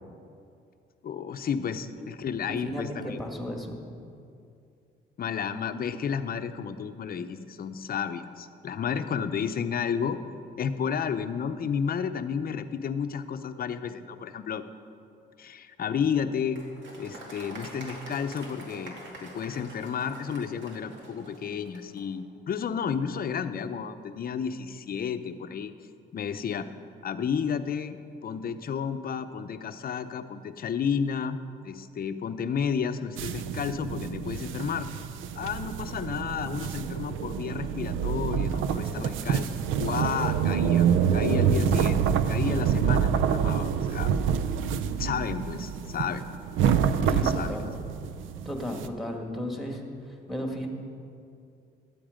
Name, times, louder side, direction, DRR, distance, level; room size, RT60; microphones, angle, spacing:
voice 1, 1.0-3.2 5.2-10.2 10.6-14.6 15.4-16.6 17.0-25.7 26.1-26.7 27.0-31.4 31.6-34.9 35.4-44.1 44.9-46.2 47.0-47.6, left 7 dB, 50° left, 10 dB, 0.7 m, -32 dB
voice 2, 2.5-3.8 47.0-47.7 48.5-49.8 50.3-50.7, equal, ahead, 2 dB, 1.9 m, -34 dB
Applause, 16.5-22.1, right 1 dB, 70° right, 2.2 m, -45 dB
sound 1, 33.2-48.9, right 7 dB, 85° right, 0.5 m, -27 dB
12.5 x 8.6 x 5.1 m, 2.5 s
cardioid pair, 90°, 20 cm